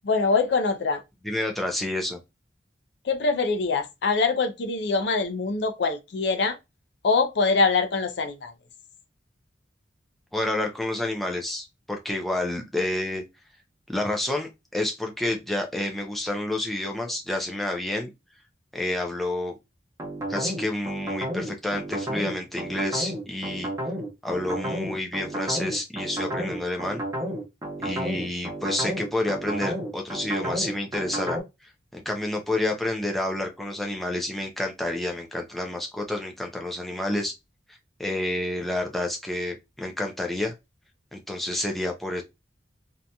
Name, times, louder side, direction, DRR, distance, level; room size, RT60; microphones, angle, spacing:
voice 1, 0.0-1.0 3.0-6.6 7.0-8.5, left 4 dB, 65° left, 0.4 m, -24 dB
voice 2, 1.2-2.2 10.3-13.2 13.9-18.1 18.7-19.5 20.3-23.7 24.2-27.0 27.8-31.4 31.9-37.3 38.0-40.5 41.1-42.2, left 1 dB, ahead, 0.5 m, -29 dB
sound 1, 20.0-31.4, right 1 dB, 15° right, 0.9 m, -31 dB
2.8 x 2.6 x 2.2 m
head